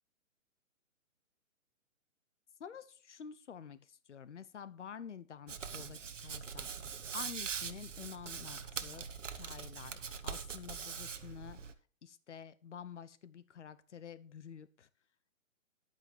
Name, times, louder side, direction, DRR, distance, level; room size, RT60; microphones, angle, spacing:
voice 1, 2.6-6.7 7.1-9.0 9.3-11.6 12.0-14.9, left 7 dB, 60° left, 15 dB, 1.1 m, -49 dB
Hands, 5.5-11.7, right 6 dB, 65° right, 1.2 m, -42 dB
10.5 x 8.9 x 4.5 m, 0.38 s
figure-of-eight pair, 135°, 40 cm